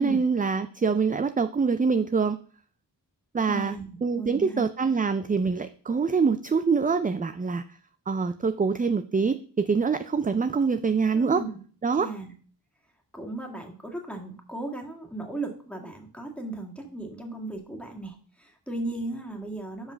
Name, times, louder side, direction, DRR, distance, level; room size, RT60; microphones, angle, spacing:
voice 1, 0.0-2.4 3.3-3.7 4.0-7.6 8.1-11.4 11.8-12.1, right 5 dB, 20° right, 11 dB, 0.3 m, -25 dB
voice 2, 3.5-3.9 4.1-4.9 11.1-11.5 12.0-12.3 13.1-19.9, right 2 dB, 5° left, 1 dB, 1.9 m, -36 dB
5.4 x 4.8 x 6.3 m, 0.43 s
wide cardioid pair, 60°, 43 cm